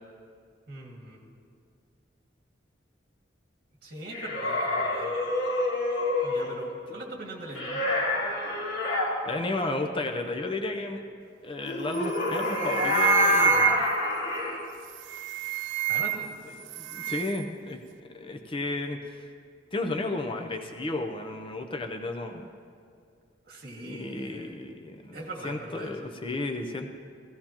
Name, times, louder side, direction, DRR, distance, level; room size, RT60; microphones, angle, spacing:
voice 1, 0.7-1.2 3.8-5.1 6.2-7.8 15.9-16.3 23.5-24.5 25.1-26.1, right 2 dB, 55° right, -1 dB, 2.0 m, -41 dB
sound 1, 4.1-6.5 7.5-9.1 11.6-14.6, left 2 dB, 85° left, 2.4 m, -27 dB
voice 2, 9.3-11.0 11.4-13.9 16.6-17.8 18.1-19.3 19.7-22.5 23.8-25.2 25.4-26.9, left 2 dB, 30° left, 4 dB, 0.6 m, -33 dB
sound 2, 11.9-12.2 12.5-14.1 14.9-16.4 16.7-17.5, right 9 dB, 85° right, 0.4 m, -28 dB
16.0 x 15.5 x 2.9 m, 2.3 s
head